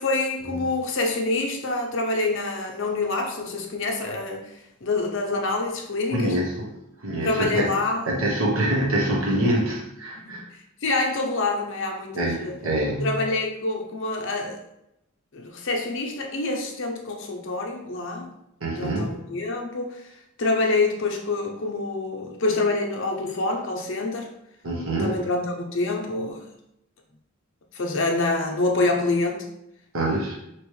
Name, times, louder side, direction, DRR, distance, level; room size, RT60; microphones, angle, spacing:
voice 1, 0.0-6.4 7.2-8.1 10.2-12.6 13.0-14.6 15.3-18.3 18.7-20.1 20.4-24.3 25.0-26.4 27.7-29.5, left 2 dB, 60° left, 2 dB, 0.6 m, -26 dB
voice 2, 6.1-6.7 7.0-7.7 8.1-10.4 12.1-13.1 18.6-19.1 24.6-25.2 29.9-30.4, right 1 dB, 80° right, -2 dB, 1.0 m, -25 dB
3.1 x 3.0 x 3.1 m, 0.83 s
head